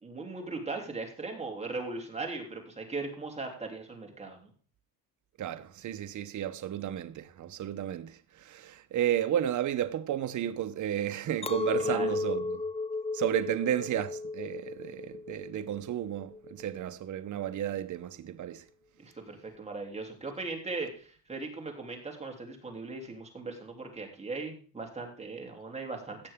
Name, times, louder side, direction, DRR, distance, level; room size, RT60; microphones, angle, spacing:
voice 1, 0.0-4.5 11.8-12.1 19.0-26.2, right 3 dB, 15° right, 3.1 m, -38 dB
voice 2, 5.4-8.2 8.5-12.6 13.1-18.6, right 11 dB, 50° right, 0.9 m, -32 dB
Chink clink, 11.4-16.8, left 3 dB, 15° left, 0.4 m, -34 dB
16.5 x 6.9 x 3.6 m
cardioid pair, 130°, 39 cm